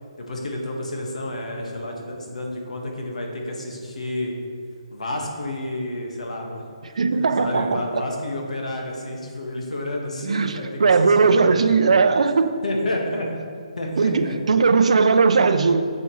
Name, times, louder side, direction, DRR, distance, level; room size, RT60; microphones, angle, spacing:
voice 1, 0.2-4.3 4.9-11.8 12.6-13.3 13.8-14.4, left 1 dB, 90° left, 1 dB, 1.6 m, -30 dB
voice 2, 7.0-8.0 10.2-12.5 14.0-15.8, right 4 dB, 75° right, 10 dB, 0.5 m, -18 dB
7.7 x 7.0 x 3.1 m, 2.1 s
hypercardioid pair, 160°, 4 cm